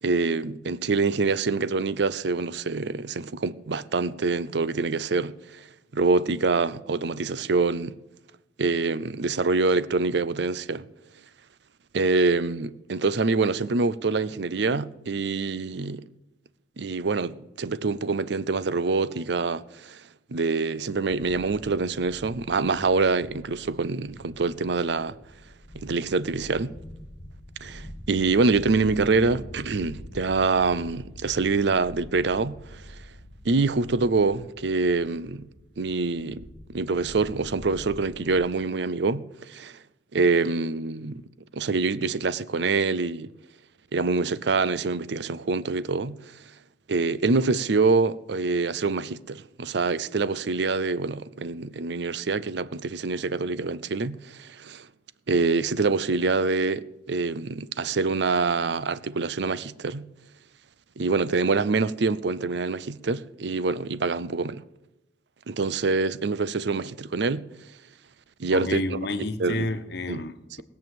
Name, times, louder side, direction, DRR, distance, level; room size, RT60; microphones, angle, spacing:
voice 1, 0.0-5.6 5.9-7.9 8.6-10.8 11.9-16.1 16.8-20.0 20.3-25.1 25.7-26.7 27.6-33.0 33.4-35.5 35.8-39.8 40.1-41.2 41.5-43.3 43.9-46.2 46.9-54.9 55.3-60.0 61.0-64.6 65.5-67.4 68.4-69.0 69.4-69.7 70.1-70.2, right 4 dB, 70° right, 0.6 m, -25 dB
sound 1, 21.1-38.5, equal, 45° left, 1.2 m, -45 dB
voice 2, 68.5-70.6, left 2 dB, 65° left, 1.1 m, -30 dB
19.0 x 7.1 x 7.8 m
head